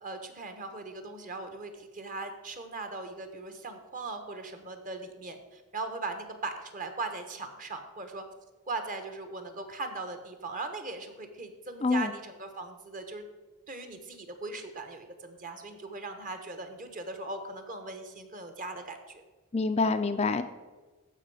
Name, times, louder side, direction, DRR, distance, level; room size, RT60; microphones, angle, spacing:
voice 1, 0.0-8.2 8.6-13.3 13.7-19.2, right 3 dB, 40° right, 7 dB, 1.2 m, -39 dB
voice 2, 11.8-12.1 19.5-20.4, left 3 dB, 30° left, 9 dB, 0.4 m, -26 dB
14.5 x 5.4 x 4.9 m, 1.3 s
head